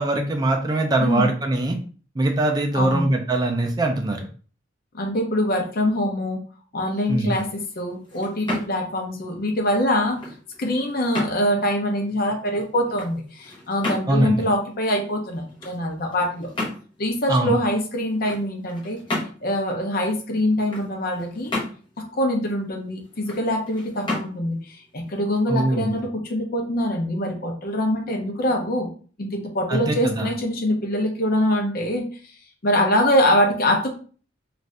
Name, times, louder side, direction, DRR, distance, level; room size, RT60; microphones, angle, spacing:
voice 1, 0.0-1.8 2.2-4.3 7.1-7.3 14.1-14.5 17.3-17.5 25.5-26.0 29.7-30.3, right 2 dB, 20° right, 3 dB, 0.4 m, -22 dB
voice 2, 1.0-1.3 2.7-3.1 4.9-6.4 6.7-10.2 10.6-16.5 17.0-19.0 19.4-21.5 22.1-28.9 29.2-32.1 32.6-34.0, left 1 dB, 50° left, 2 dB, 0.7 m, -24 dB
sound 1, 7.2-26.0, left 2 dB, 25° left, 1.0 m, -35 dB
2.6 x 2.5 x 3.2 m, 0.41 s
head